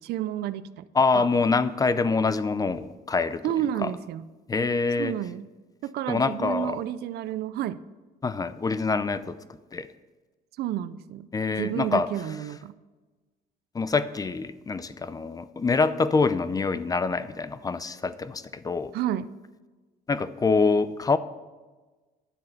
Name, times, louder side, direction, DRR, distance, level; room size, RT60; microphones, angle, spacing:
voice 1, 0.0-0.8 1.1-1.3 3.4-4.2 5.0-5.5 5.8-7.8 10.6-11.3 11.6-12.7 18.9-19.3, right 11 dB, 70° right, 15 dB, 0.5 m, -30 dB
voice 2, 0.9-3.4 3.8-3.9 4.5-5.2 6.1-6.8 8.2-9.4 9.7-9.9 11.3-12.1 13.7-18.9 20.1-21.2, left 4 dB, 20° left, 14 dB, 0.5 m, -25 dB
10.0 x 7.6 x 5.8 m, 1.3 s
cardioid pair, 110°, 17 cm